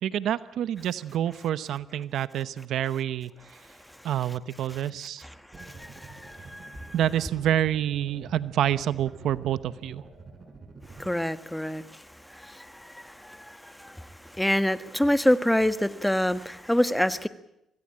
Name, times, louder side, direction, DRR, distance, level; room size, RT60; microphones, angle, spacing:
voice 1, 0.0-3.3 4.0-5.2 6.9-10.0, right 11 dB, 75° right, 15 dB, 0.9 m, -27 dB
sound 1, 5.5-11.1, right 3 dB, 35° right, 6.9 m, -47 dB
voice 2, 5.6-6.8 11.0-11.8 12.3-13.9 14.4-17.3, left 1 dB, 5° left, 11 dB, 1.4 m, -26 dB
25.5 x 18.5 x 8.8 m, 0.85 s
cardioid pair, 90°, 0 cm